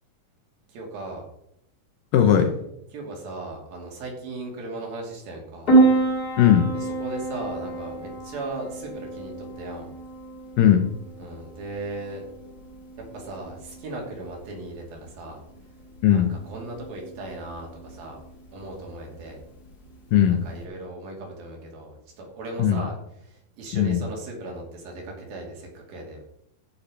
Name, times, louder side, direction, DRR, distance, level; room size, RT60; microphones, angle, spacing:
voice 1, 0.7-1.2 2.9-5.7 6.7-9.9 11.2-12.2 13.1-15.4 16.1-18.2 18.5-19.4 20.3-23.0 23.2-26.2, right 2 dB, 70° right, 0 dB, 4.5 m, -37 dB
voice 2, 2.1-2.6 6.4-6.7 10.6-10.9 16.0-16.3 20.1-20.5 22.6-22.8 23.7-24.0, left 9 dB, 75° left, 8 dB, 2.2 m, -18 dB
Piano, 5.7-20.6, right 3 dB, 30° left, 2.3 m, -28 dB
14.5 x 5.8 x 5.8 m, 0.77 s
omnidirectional pair, 4.4 m